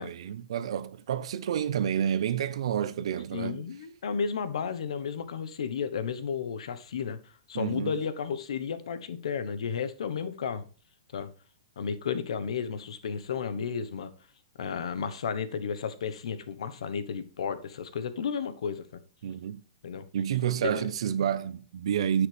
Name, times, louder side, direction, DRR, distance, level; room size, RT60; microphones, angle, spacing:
voice 1, 0.0-3.7 7.5-7.9 19.2-19.6 20.1-22.3, right 9 dB, 70° right, 0.9 m, -29 dB
voice 2, 3.3-10.7 11.1-11.3 11.8-14.1 14.6-18.9 19.8-20.0 20.6-20.9, left 6 dB, 75° left, 1.1 m, -33 dB
9.8 x 8.0 x 3.4 m
hypercardioid pair, 150°, 3 cm